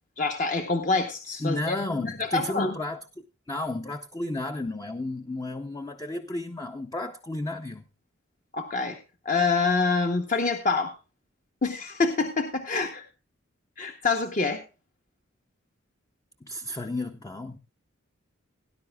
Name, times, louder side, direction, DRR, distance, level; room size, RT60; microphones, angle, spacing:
voice 1, 0.2-2.7 8.5-9.0 9.2-10.9 11.6-13.1 13.8-14.6, left 4 dB, 40° left, 0.9 m, -26 dB
voice 2, 1.4-3.0 3.5-7.8 16.4-17.6, left 2 dB, 20° left, 0.5 m, -32 dB
18.0 x 10.5 x 2.3 m
head